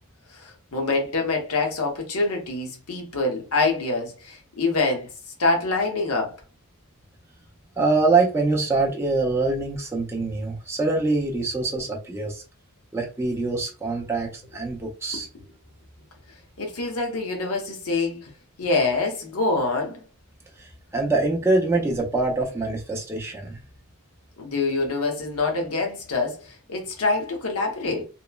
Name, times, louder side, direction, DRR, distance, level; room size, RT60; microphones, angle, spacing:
voice 1, 0.3-5.1 5.4-6.4 16.6-18.3 18.6-20.0 24.4-28.0, left 3 dB, 70° left, 0.8 m, -25 dB
voice 2, 7.8-12.4 12.9-15.3 20.6-23.6, right 3 dB, 10° right, 0.4 m, -24 dB
2.9 x 2.0 x 2.2 m
head